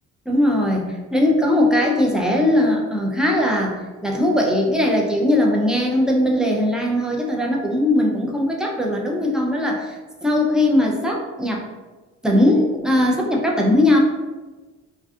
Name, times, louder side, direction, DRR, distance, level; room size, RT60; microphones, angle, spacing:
voice 1, 0.3-11.7 12.2-14.0, left 1 dB, ahead, -1 dB, 0.4 m, -19 dB
2.5 x 2.3 x 2.4 m, 1.3 s
cardioid pair, 90°, 30 cm